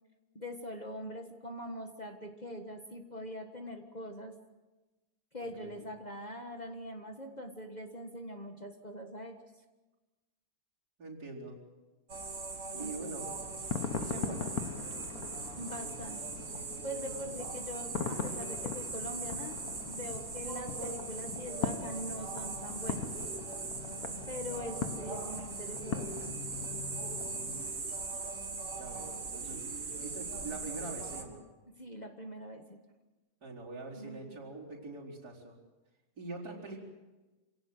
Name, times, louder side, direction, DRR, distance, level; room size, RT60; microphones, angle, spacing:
voice 1, 0.3-4.3 5.3-9.4 12.7-13.1 14.0-14.2 15.6-16.2 16.8-19.6 19.8-23.1 24.3-26.3 31.8-32.8 33.9-34.4, equal, 25° left, 4 dB, 1.6 m, -43 dB
voice 2, 5.4-5.9 11.0-11.6 12.8-13.3 14.0-14.5 17.0-17.3 27.1-27.8 28.7-29.7 30.0-31.4 33.4-35.6 36.2-36.8, right 3 dB, 70° right, -3 dB, 4.9 m, -44 dB
sound 1, 12.1-31.2, right 4 dB, 50° right, 2.3 m, -40 dB
sound 2, 13.2-27.8, left 6 dB, 60° left, 1.7 m, -41 dB
27.0 x 18.0 x 7.8 m, 1.2 s
omnidirectional pair, 1.8 m